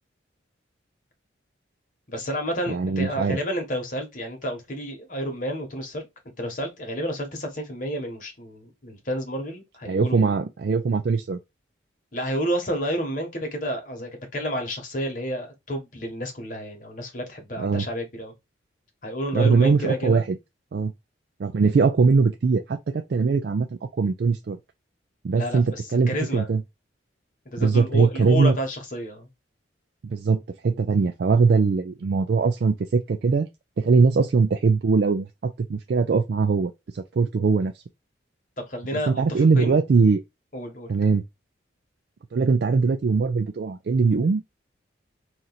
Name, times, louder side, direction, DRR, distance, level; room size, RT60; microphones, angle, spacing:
voice 1, 2.1-6.0 6.4-10.3 12.1-18.3 19.0-20.3 25.4-26.5 27.4-29.3 38.6-39.8 40.5-40.9, equal, 40° left, 1.2 m, -30 dB
voice 2, 2.7-3.4 9.9-11.4 17.6-17.9 19.3-20.4 20.7-20.9 21.4-23.7 24.0-24.6 25.2-26.6 27.6-28.6 30.0-33.5 33.8-37.8 39.1-40.2 40.9-41.2 42.3-44.4, right 4 dB, 55° right, 0.3 m, -21 dB
2.9 x 2.6 x 3.9 m
head